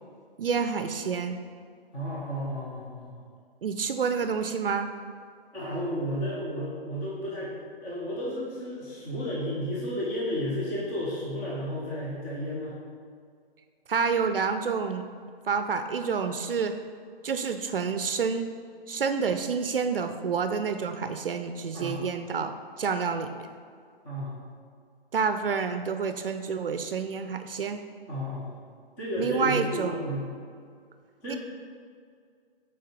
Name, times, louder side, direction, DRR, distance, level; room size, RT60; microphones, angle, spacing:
voice 1, 0.4-1.4 3.6-4.9 13.9-15.0 15.4-16.7 17.2-18.5 18.9-22.5 22.8-23.6 25.1-27.8 29.2-30.0 31.3-31.4, right 5 dB, 65° right, 8 dB, 0.5 m, -28 dB
voice 2, 1.9-3.3 5.5-7.5 7.8-12.8 21.7-22.0 24.0-24.4 28.1-28.5 29.0-30.3 31.2-31.4, equal, 5° left, -7 dB, 0.4 m, -32 dB
6.4 x 4.4 x 5.0 m, 2.2 s
figure-of-eight pair, 130°, 30 cm